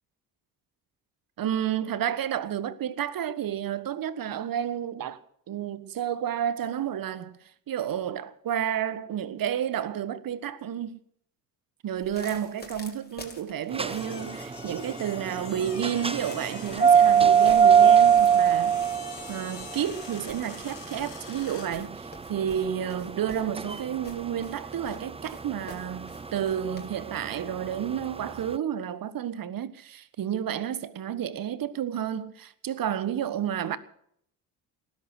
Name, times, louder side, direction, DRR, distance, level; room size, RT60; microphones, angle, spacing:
voice 1, 1.4-5.2 5.5-7.4 7.7-11.0 11.8-18.8 19.3-33.8, right 9 dB, 45° right, 1.5 m, -31 dB
sound 1, 12.0-26.9, left 2 dB, 20° left, 4.8 m, -49 dB
sound 2, 13.7-28.4, right 8 dB, 10° right, 0.7 m, -23 dB
sound 3, 13.8-21.8, left 7 dB, 90° left, 2.2 m, -45 dB
19.0 x 11.5 x 6.4 m
hypercardioid pair, 50°, 48 cm